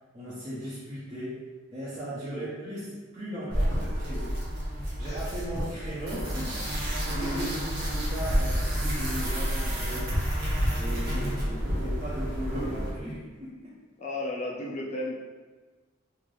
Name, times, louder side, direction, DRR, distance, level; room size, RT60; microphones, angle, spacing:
voice 1, 0.1-1.4 1.7-4.4 5.0-10.1 10.8-13.7, equal, 30° right, -12 dB, 0.8 m, -37 dB
sound 1, 3.5-12.9, equal, 55° right, 1.0 m, -29 dB
voice 2, 7.1-7.6 11.1-11.4 14.0-15.2, left 1 dB, 35° left, -4 dB, 0.4 m, -34 dB
2.8 x 2.5 x 3.2 m, 1.4 s
head